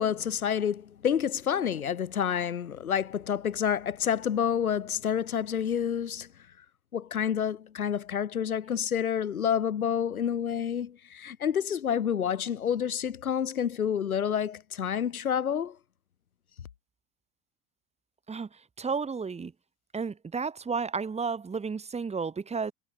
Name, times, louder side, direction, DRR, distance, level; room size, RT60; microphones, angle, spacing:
voice 1, 0.0-6.3 6.9-15.8, left 8 dB, 75° left, 4.9 m, -29 dB
voice 2, 18.3-19.5 19.9-22.7, right 5 dB, 15° right, 2.0 m, -32 dB
figure-of-eight pair, 80°, 43 cm